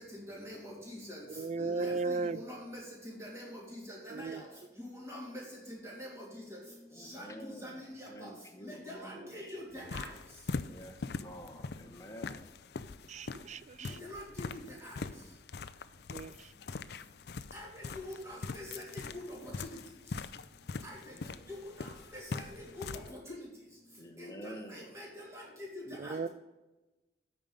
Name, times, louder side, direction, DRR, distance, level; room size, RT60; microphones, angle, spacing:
voice 1, 0.3-1.2 1.6-4.5 4.8-6.6 7.0-8.3 8.6-10.1 13.8-15.0 17.5-19.8 20.8-21.1 21.5-23.3 24.2-26.2, left 1 dB, 15° right, -4 dB, 3.0 m, -45 dB
voice 2, 1.4-2.4 4.1-4.4 13.1-14.0 16.1-16.5 26.1-26.3, right 3 dB, 40° right, 16 dB, 0.3 m, -35 dB
voice 3, 6.9-10.1 10.6-12.5 21.0-21.5 24.0-25.0, equal, 20° left, 3 dB, 1.0 m, -50 dB
sound 1, 9.7-23.1, left 4 dB, 60° left, 0.4 m, -42 dB
8.8 x 5.4 x 7.2 m, 1.1 s
head